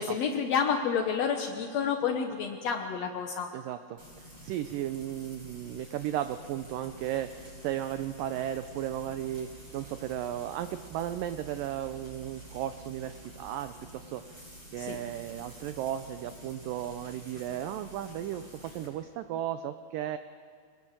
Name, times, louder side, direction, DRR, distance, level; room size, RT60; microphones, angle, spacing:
voice 1, 0.0-3.5 14.8-15.0, left 6 dB, 85° left, 4 dB, 1.5 m, -29 dB
voice 2, 3.5-14.4 14.7-20.2, right 11 dB, 80° right, 10 dB, 2.0 m, -35 dB
Frying (food), 4.0-18.9, right 1 dB, 25° right, 5.5 m, -49 dB
24.0 x 20.5 x 7.5 m, 2.1 s
omnidirectional pair, 4.7 m